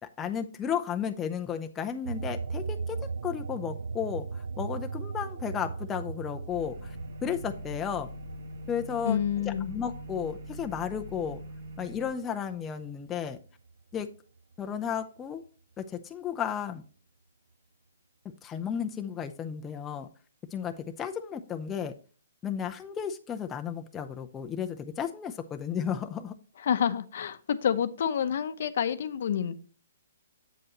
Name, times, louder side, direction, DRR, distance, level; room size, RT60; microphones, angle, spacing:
voice 1, 0.0-7.0 7.2-8.1 8.7-9.2 9.4-11.4 11.8-13.4 13.9-14.1 14.6-15.4 15.8-16.8 18.4-20.1 20.5-21.9 22.4-26.3, left 8 dB, 15° left, 0.6 m, -33 dB
sound 1, 2.0-12.9 13.3-14.8, right 4 dB, 85° right, 0.3 m, -39 dB
sound 2, 6.5-12.1, equal, 70° right, 2.3 m, -43 dB
voice 2, 9.0-9.7 26.6-29.5, left 8 dB, 60° left, 0.8 m, -28 dB
7.8 x 7.7 x 3.0 m
hypercardioid pair, 145°, 0 cm